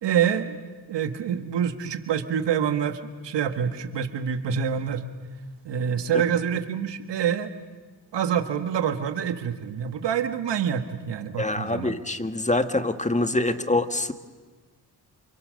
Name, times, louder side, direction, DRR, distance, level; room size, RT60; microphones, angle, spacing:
voice 1, 0.0-0.6 0.9-5.0 5.6-7.5 8.1-12.0, right 8 dB, 85° right, 8 dB, 1.8 m, -26 dB
voice 2, 11.4-14.1, left 2 dB, 15° left, 9 dB, 1.7 m, -25 dB
28.5 x 28.5 x 6.6 m, 1.3 s
cardioid pair, 70°, 41 cm